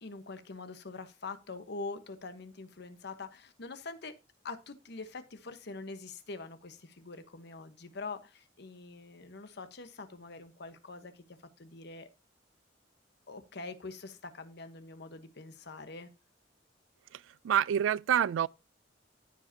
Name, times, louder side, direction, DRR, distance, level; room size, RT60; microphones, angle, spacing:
voice 1, 0.0-4.1 4.4-12.1 13.3-16.1, left 3 dB, 60° left, 1.0 m, -44 dB
voice 2, 17.1-18.5, right 9 dB, 90° right, 0.3 m, -28 dB
14.5 x 5.1 x 2.7 m
head